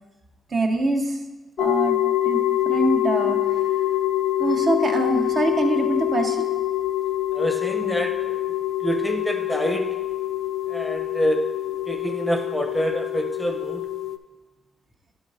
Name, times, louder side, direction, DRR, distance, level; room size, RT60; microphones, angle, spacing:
voice 1, 0.5-1.2 1.6-2.0 2.2-3.6 4.4-6.5 7.8-7.9, right 1 dB, 50° right, 3 dB, 0.8 m, -24 dB
sound 1, 1.6-14.2, left 13 dB, 85° left, 0.3 m, -25 dB
voice 2, 7.3-8.4 8.8-9.9 10.7-11.4 11.9-13.9, equal, 5° left, 4 dB, 0.7 m, -26 dB
10.5 x 4.0 x 3.9 m, 1.2 s
cardioid pair, 110°, 0 cm